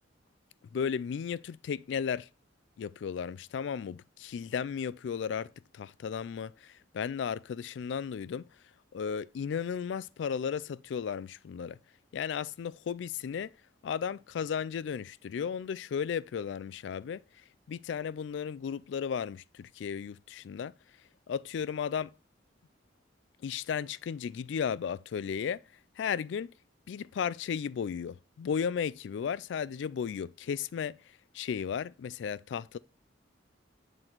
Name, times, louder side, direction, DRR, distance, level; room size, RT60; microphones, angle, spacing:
voice 1, 0.7-2.3 2.8-8.5 8.9-11.8 12.1-13.5 13.8-17.2 17.7-20.7 21.3-22.1 23.4-25.6 26.0-26.5 26.9-31.0 31.3-32.8, left 7 dB, 65° left, 0.3 m, -34 dB
7.7 x 4.0 x 4.4 m
head